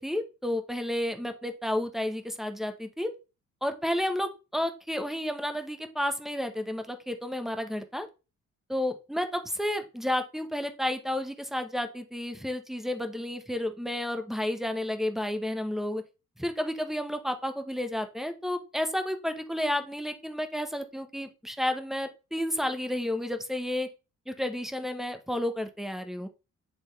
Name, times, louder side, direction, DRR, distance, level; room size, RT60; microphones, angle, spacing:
voice 1, 0.0-3.1 3.6-8.1 8.7-16.0 16.4-23.9 24.3-26.3, left 1 dB, ahead, 8 dB, 0.9 m, -31 dB
8.7 x 3.5 x 3.2 m, 0.30 s
cardioid pair, 90°, 30 cm